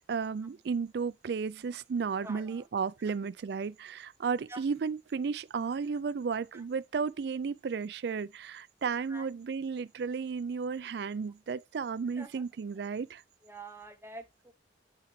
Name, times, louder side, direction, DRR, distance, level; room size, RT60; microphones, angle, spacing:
voice 1, 0.1-13.2, right 5 dB, 60° right, 0.4 m, -33 dB
voice 2, 2.2-2.6 4.5-4.6 6.5-6.6 9.1-9.3 12.2-12.4 13.4-14.5, right 2 dB, 15° right, 0.8 m, -46 dB
8.5 x 4.6 x 3.1 m
head